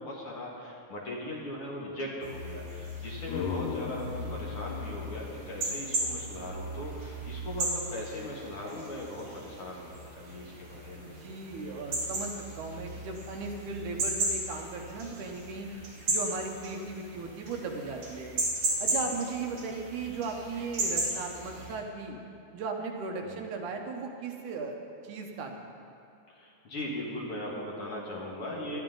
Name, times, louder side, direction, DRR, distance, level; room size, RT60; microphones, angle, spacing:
voice 1, 0.0-11.1 18.8-19.1 23.3-23.4 26.3-28.8, left 1 dB, 50° left, -4 dB, 2.3 m, -39 dB
sound 1, 2.2-21.7, right 2 dB, 50° right, 4.2 m, -36 dB
sound 2, 3.2-6.6, left 6 dB, 80° left, 1.5 m, -39 dB
voice 2, 11.0-15.7 16.1-18.4 18.8-22.2 22.5-24.8 25.0-25.7, right 4 dB, 75° right, 2 dB, 2.4 m, -37 dB
20.0 x 12.0 x 3.9 m, 2.6 s
omnidirectional pair, 3.7 m